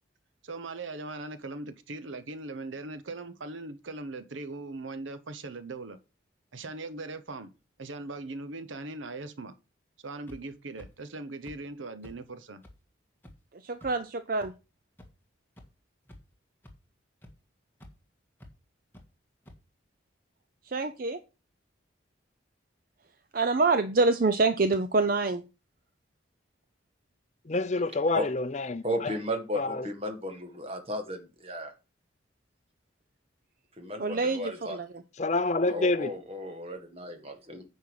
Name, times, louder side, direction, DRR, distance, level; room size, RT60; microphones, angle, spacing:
voice 1, 0.4-6.0 6.5-7.5 7.8-9.5 10.0-12.6, right 2 dB, 80° right, 0.9 m, -40 dB
sound 1, 10.3-10.4 10.8-10.9 11.4-11.6 12.0-12.1 12.6-12.7 13.2-13.3 13.8-13.9 14.4-14.5 15.0-15.1 15.6-15.7 16.1-16.3 16.6-16.7 17.2-17.3 17.8-17.9 18.4-18.5 18.9-19.0 19.5-19.6, left 1 dB, 10° left, 1.6 m, -49 dB
voice 2, 13.6-14.5 20.7-21.2 23.3-25.4 34.0-34.9, right 3 dB, 45° right, 0.6 m, -26 dB
voice 3, 27.5-28.8 29.6-29.8 35.2-36.1, left 2 dB, 35° left, 0.6 m, -27 dB
voice 4, 28.8-31.7 33.8-34.8 35.7-37.6, equal, 30° right, 1.7 m, -34 dB
9.6 x 5.5 x 4.8 m
head